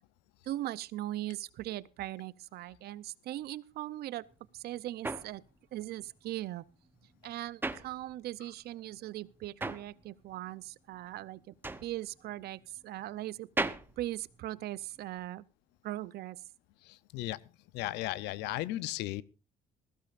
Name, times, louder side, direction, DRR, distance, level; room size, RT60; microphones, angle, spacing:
voice 1, 0.4-4.3 4.5-5.4 5.7-6.6 7.2-11.5 11.8-13.5 14.0-15.4 15.8-16.4, right 15 dB, 70° right, 0.7 m, -39 dB
sound 1, 4.3-8.6 8.9-15.1, right 2 dB, 10° right, 0.9 m, -40 dB
voice 2, 16.8-17.4 17.7-19.2, left 16 dB, 90° left, 0.7 m, -35 dB
21.0 x 15.5 x 2.5 m
cardioid pair, 110°, 17 cm